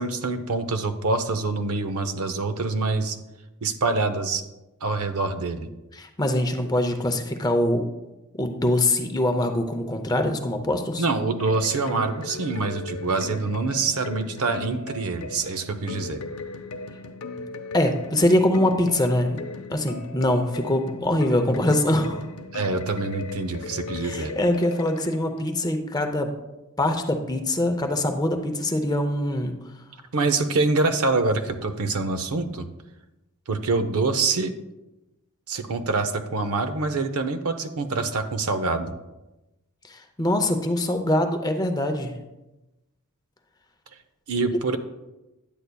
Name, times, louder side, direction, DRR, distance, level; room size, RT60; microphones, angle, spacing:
voice 1, 0.0-3.2 3.6-4.4 4.8-5.7 11.0-16.2 22.5-24.3 30.1-32.7 33.5-34.6 35.5-38.9 44.3-44.8, right 3 dB, 70° right, 9 dB, 0.6 m, -25 dB
voice 2, 5.9-7.9 8.4-11.0 17.7-19.4 19.7-22.2 24.0-26.3 26.8-29.5 39.9-42.1, left 1 dB, 15° left, 6 dB, 0.6 m, -23 dB
sound 1, 11.4-25.5, left 3 dB, 65° left, 0.6 m, -37 dB
9.9 x 8.1 x 2.3 m, 1.0 s
head